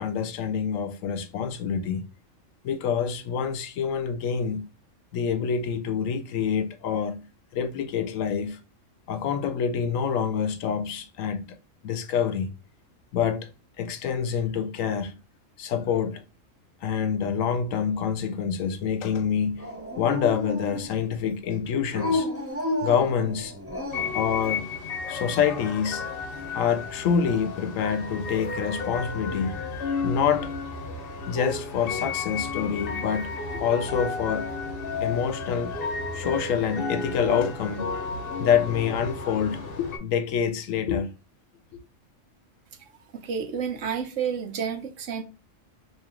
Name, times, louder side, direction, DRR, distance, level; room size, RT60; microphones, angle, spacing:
voice 1, 0.0-2.0 2.6-4.7 5.1-7.3 7.5-8.6 9.1-11.6 11.8-12.5 13.1-13.5 13.8-15.2 15.6-16.2 16.8-19.7 20.0-22.3 22.8-23.5 24.1-24.7 25.0-26.2 26.5-30.7 31.2-34.5 35.0-38.1 38.4-41.1, left 7 dB, 90° left, 1.0 m, -27 dB
Dog, 19.6-21.1 21.9-24.3, left 2 dB, 20° right, 0.4 m, -31 dB
sound 1, 23.9-40.0, left 4 dB, 50° left, 0.9 m, -33 dB
voice 2, 42.8-45.2, right 7 dB, 75° right, 1.0 m, -31 dB
3.1 x 2.7 x 3.6 m
omnidirectional pair, 1.3 m